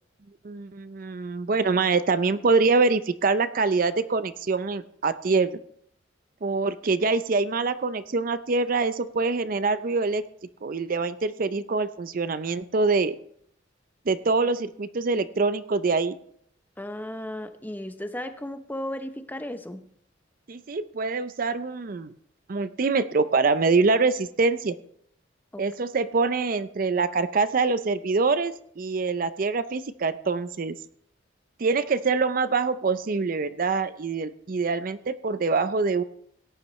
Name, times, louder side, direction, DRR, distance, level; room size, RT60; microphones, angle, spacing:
voice 1, 0.4-5.6 6.4-10.2 10.6-13.2 14.1-16.2 20.5-22.1 22.5-24.7 25.6-30.7 31.6-36.0, right 4 dB, 45° right, 13 dB, 0.5 m, -25 dB
voice 2, 16.8-19.8 25.5-25.6, left 1 dB, 10° left, 9 dB, 0.7 m, -35 dB
17.5 x 9.7 x 3.1 m, 0.68 s
head